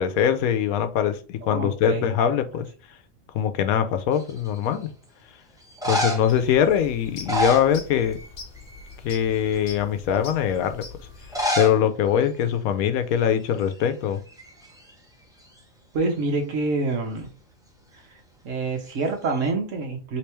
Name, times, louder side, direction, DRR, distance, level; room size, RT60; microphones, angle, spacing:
voice 1, 0.0-2.7 3.3-4.9 5.8-8.2 9.0-10.8 11.6-14.2, left 9 dB, 85° left, 9 dB, 1.0 m, -22 dB
voice 2, 1.4-2.1 15.9-17.3 18.4-20.2, right 3 dB, 65° right, 3 dB, 1.3 m, -26 dB
sound 1, 4.2-4.7 5.6-6.4 7.1-8.3 8.6-8.9 9.5-9.6 11.2-11.8 12.1-12.2 12.4-12.5 13.2-13.4 13.7-14.9 18.9-19.5, equal, 5° right, 0.7 m, -28 dB
sound 2, 6.3-11.4, left 4 dB, 65° left, 1.2 m, -43 dB
3.3 x 3.3 x 3.0 m, 0.35 s
omnidirectional pair, 1.5 m